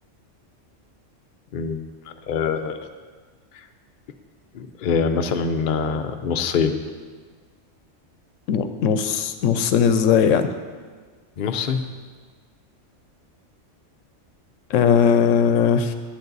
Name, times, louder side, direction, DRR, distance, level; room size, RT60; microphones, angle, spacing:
voice 1, 2.3-2.9 3.5-3.7 4.5-6.8 11.4-11.9, left 5 dB, 50° left, 6 dB, 0.7 m, -24 dB
voice 2, 8.5-10.5 14.7-15.9, left 7 dB, 85° left, 9 dB, 1.0 m, -18 dB
10.5 x 8.2 x 4.0 m, 1.5 s
omnidirectional pair, 1.3 m